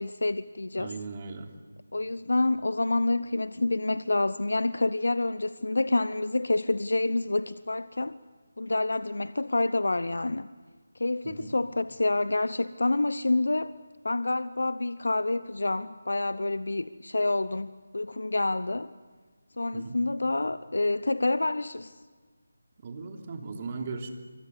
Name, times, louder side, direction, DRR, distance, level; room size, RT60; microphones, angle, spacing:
voice 1, 0.0-0.9 1.9-8.2 8.6-10.5 10.9-13.7 14.0-18.9 19.6-21.9, left 2 dB, 75° left, 0.8 m, -28 dB
voice 2, 0.8-1.5 11.2-11.5 19.7-20.0 22.8-24.1, right 4 dB, 30° right, 3.3 m, -38 dB
27.0 x 24.0 x 8.3 m
figure-of-eight pair, 160°, 0 cm